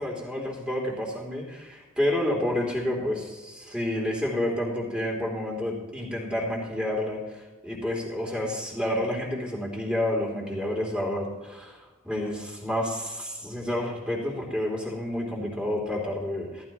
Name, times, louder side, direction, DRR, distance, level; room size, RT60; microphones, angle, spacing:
voice 1, 0.0-16.6, left 1 dB, 5° right, -2 dB, 3.2 m, -29 dB
14.5 x 14.5 x 3.1 m, 1.2 s
head